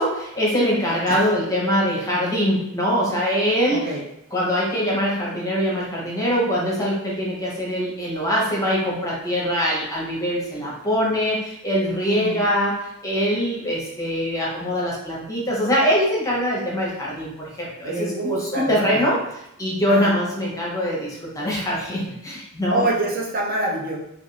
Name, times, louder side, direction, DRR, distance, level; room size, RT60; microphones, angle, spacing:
voice 1, 0.0-4.0 4.3-19.2 19.6-22.9, equal, 15° left, -5 dB, 0.7 m, -23 dB
voice 2, 3.7-4.0 12.1-12.4 17.8-19.1 19.9-20.2 22.7-24.0, right 2 dB, 45° right, -2 dB, 0.5 m, -26 dB
2.4 x 2.4 x 3.1 m, 0.80 s
head